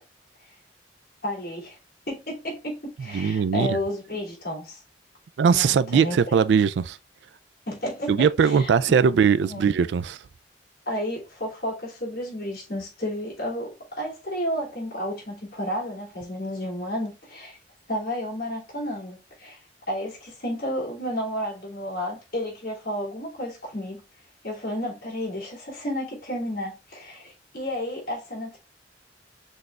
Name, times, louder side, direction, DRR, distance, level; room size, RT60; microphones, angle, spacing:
voice 1, 1.2-1.8 2.1-4.8 5.5-6.4 7.7-8.7 9.5-9.7 10.9-17.6 17.9-19.6 19.9-24.0 24.4-28.6, equal, 55° left, 2.7 m, -32 dB
voice 2, 3.1-3.8 5.4-7.0 8.1-10.2, right 6 dB, 70° right, 0.3 m, -20 dB
6.1 x 3.3 x 2.5 m
head